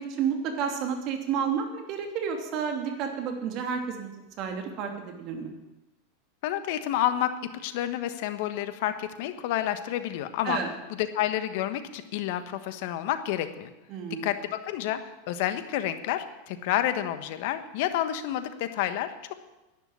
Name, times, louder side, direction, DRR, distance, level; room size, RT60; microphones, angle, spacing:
voice 1, 0.0-4.1 4.4-5.5 10.4-10.7 13.9-14.3, right 7 dB, 50° right, 3 dB, 2.8 m, -30 dB
voice 2, 6.4-7.3 7.6-10.6 11.0-13.7 14.2-15.0 15.3-19.3, left 12 dB, 60° left, 10 dB, 1.3 m, -29 dB
11.5 x 10.5 x 8.8 m, 1.1 s
hypercardioid pair, 95°, 0 cm